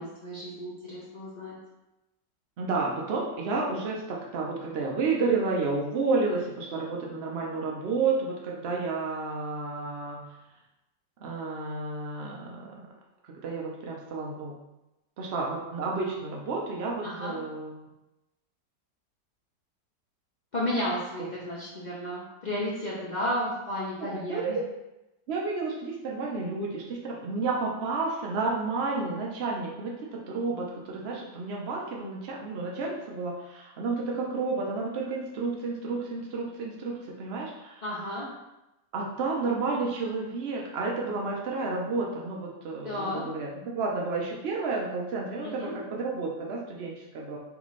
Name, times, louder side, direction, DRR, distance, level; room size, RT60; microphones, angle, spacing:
voice 1, 0.0-1.6 17.0-17.3 20.5-24.6 37.8-38.3 42.8-43.2 45.4-45.7, left 1 dB, 65° left, -6 dB, 0.4 m, -33 dB
voice 2, 2.6-10.2 11.2-12.8 13.3-14.5 15.2-17.8 21.2-21.3 24.0-24.5 25.3-37.8 38.9-47.4, right 3 dB, 90° right, -2 dB, 0.5 m, -31 dB
3.4 x 3.1 x 4.0 m, 0.96 s
omnidirectional pair, 1.9 m